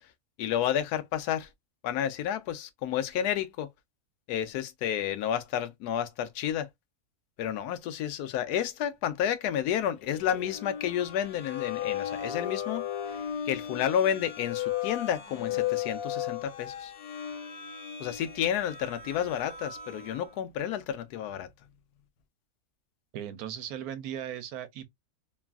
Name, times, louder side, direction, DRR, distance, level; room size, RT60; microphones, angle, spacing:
voice 1, 0.4-1.5 1.8-3.7 4.3-6.7 7.4-13.2 13.5-16.9 18.0-21.5, left 10 dB, 85° left, 1.1 m, -31 dB
sound 1, 10.1-20.3, left 10 dB, 65° left, 1.4 m, -36 dB
voice 2, 23.1-24.9, right 10 dB, 75° right, 1.0 m, -37 dB
3.0 x 2.3 x 2.3 m
omnidirectional pair, 1.6 m